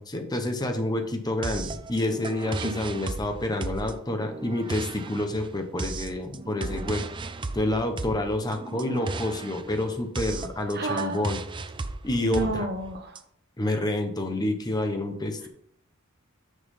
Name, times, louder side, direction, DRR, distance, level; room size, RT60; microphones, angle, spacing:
voice 1, 0.0-7.0 7.5-11.4 12.0-12.7 13.6-15.5, left 1 dB, 20° left, 5 dB, 1.1 m, -28 dB
sound 1, 1.4-13.2, right 3 dB, 25° right, 0.5 m, -35 dB
voice 2, 10.7-11.3 12.2-13.2, right 3 dB, 50° right, 3 dB, 1.2 m, -30 dB
6.5 x 5.9 x 5.5 m, 0.69 s
head